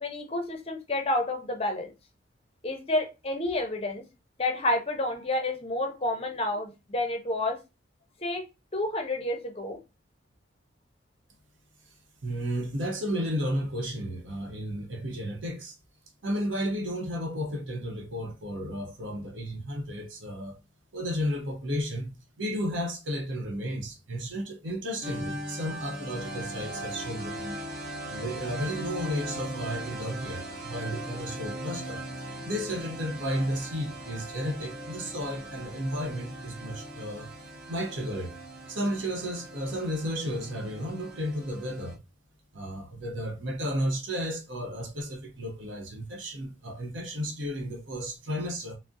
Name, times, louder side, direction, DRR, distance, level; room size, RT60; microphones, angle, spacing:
voice 1, 0.0-1.9 2.6-4.0 4.4-7.6 8.2-8.4 8.7-9.8, left 1 dB, 30° left, 0.6 m, -29 dB
voice 2, 12.2-15.7 16.2-20.6 20.9-22.1 22.4-27.6 28.1-32.1 32.4-37.3 37.7-38.3 38.7-42.0 42.5-48.8, equal, 90° right, 0.8 m, -33 dB
sound 1, 25.0-41.9, right 1 dB, 55° right, 0.7 m, -39 dB
3.6 x 2.0 x 2.6 m
head